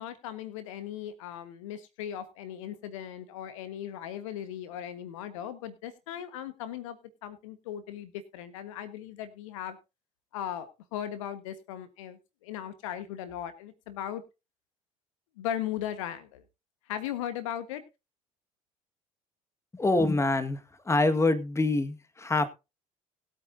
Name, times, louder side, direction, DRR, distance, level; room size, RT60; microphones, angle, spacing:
voice 1, 0.0-7.0 7.2-9.8 10.3-14.2 15.4-16.4 16.9-17.8, left 10 dB, 70° left, 1.4 m, -38 dB
voice 2, 19.7-22.5, left 2 dB, 15° left, 1.8 m, -26 dB
20.5 x 8.6 x 2.7 m
figure-of-eight pair, 60°, 17 cm